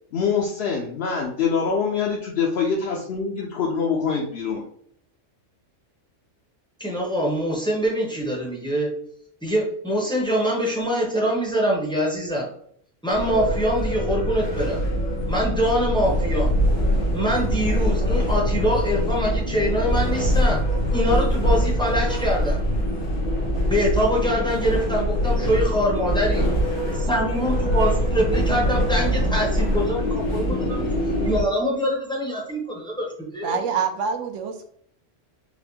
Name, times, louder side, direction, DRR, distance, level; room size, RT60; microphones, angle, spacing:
voice 1, 0.1-4.6, left 5 dB, 65° left, -1 dB, 0.7 m, -24 dB
voice 2, 6.8-9.0 9.4-12.5 13.0-14.8 15.3-16.5 17.1-20.6 20.9-22.6 23.7-26.5 26.9-30.9 31.2-33.6, equal, 5° left, -2 dB, 0.5 m, -24 dB
sound 1, 13.1-31.4, equal, 85° left, 1.4 m, -23 dB
voice 3, 33.4-34.7, right 6 dB, 75° right, 6 dB, 0.9 m, -26 dB
4.0 x 2.2 x 2.7 m, 0.66 s
omnidirectional pair, 1.3 m